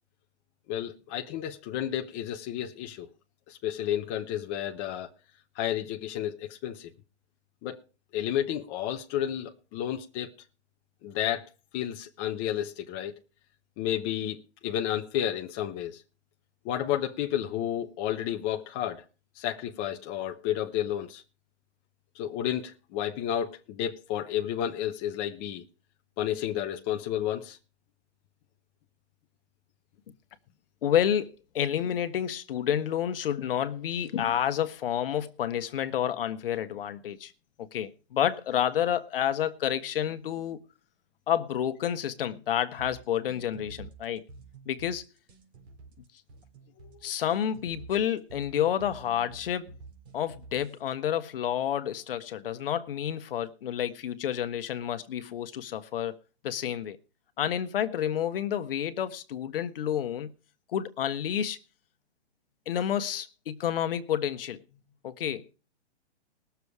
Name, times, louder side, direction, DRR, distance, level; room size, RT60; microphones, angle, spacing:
voice 1, 0.7-3.1 3.5-5.1 5.6-6.9 7.6-7.8 8.1-10.3 11.0-11.5 11.7-13.1 13.8-16.0 16.6-19.0 19.4-21.2 22.1-25.6 26.2-27.6 46.8-46.9, left 11 dB, 20° left, 0.8 m, -31 dB
voice 2, 30.8-37.3 37.6-40.6 41.3-44.2 44.7-45.0 47.0-49.7 50.1-56.2 56.4-57.0 57.4-60.3 60.7-61.6 62.7-64.6 65.0-65.5, left 10 dB, 55° left, 1.4 m, -29 dB
sound 1, 42.8-50.8, right 3 dB, 65° right, 4.0 m, -49 dB
20.0 x 7.1 x 4.8 m
hypercardioid pair, 155°, 34 cm